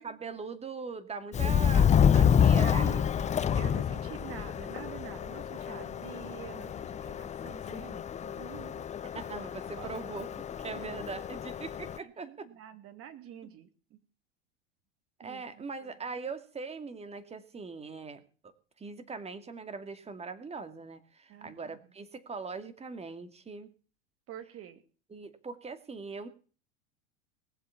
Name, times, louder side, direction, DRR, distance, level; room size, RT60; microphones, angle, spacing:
voice 1, 0.0-2.9 9.0-10.3 10.6-12.5 15.2-18.5 18.8-23.7 25.1-26.3, right 4 dB, 20° right, 10 dB, 2.3 m, -41 dB
Subway metro underground, 1.3-12.0, left 8 dB, 20° left, 0.7 m, -28 dB
voice 2, 1.9-8.9 9.8-9.9 10.7-10.8 12.0-14.0 15.2-15.9 21.3-21.8 24.3-24.8, right 11 dB, 40° right, 9 dB, 2.8 m, -47 dB
19.5 x 7.8 x 7.1 m, 0.40 s
hypercardioid pair, 90°, 33 cm